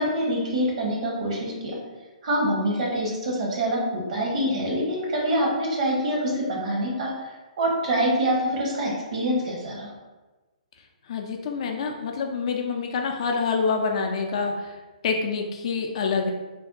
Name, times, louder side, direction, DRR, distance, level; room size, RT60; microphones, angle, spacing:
voice 1, 0.0-1.8 2.2-7.1 7.6-9.9, right 1 dB, 60° right, -2 dB, 0.9 m, -25 dB
voice 2, 11.1-14.8 15.0-16.3, left 5 dB, 50° left, 3 dB, 0.3 m, -26 dB
2.5 x 2.1 x 2.4 m, 1.2 s
hypercardioid pair, 145°, 4 cm